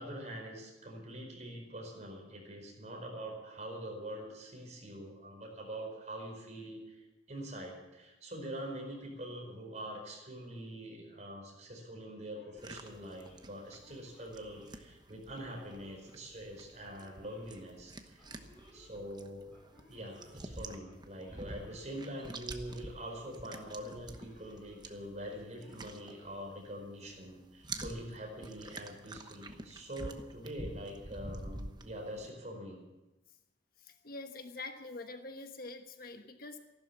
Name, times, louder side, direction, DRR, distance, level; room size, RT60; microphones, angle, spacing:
voice 1, 0.0-18.2 18.7-19.5 19.9-32.8, right 1 dB, 40° right, 1 dB, 4.8 m, -44 dB
Male speech man speaking / Siren, 12.3-27.1, left 1 dB, 10° left, 6.4 m, -62 dB
sound 1, 12.6-26.8 27.1-32.3, right 2 dB, 25° right, 1.1 m, -48 dB
voice 2, 33.8-36.6, left 3 dB, 55° left, 6 dB, 1.3 m, -45 dB
14.5 x 12.0 x 7.3 m, 1.0 s
head